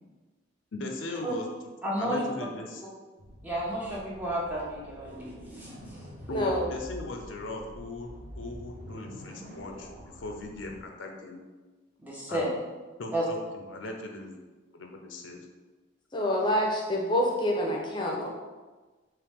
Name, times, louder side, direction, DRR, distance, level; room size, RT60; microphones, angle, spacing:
voice 1, 0.7-1.5 2.0-2.8 6.3-9.9 10.2-11.4 12.3-12.6 13.0-14.4 14.7-15.5, left 2 dB, 75° left, 2 dB, 0.6 m, -38 dB
voice 2, 1.8-2.2 3.4-5.7 12.0-12.5 13.1-13.2, right 1 dB, 10° right, -5 dB, 0.9 m, -32 dB
sound 1, 3.2-10.8, equal, 50° right, 1.4 m, -46 dB
voice 3, 6.3-6.7 16.1-18.3, equal, 25° left, -1 dB, 0.8 m, -27 dB
4.8 x 3.1 x 3.5 m, 1.3 s
head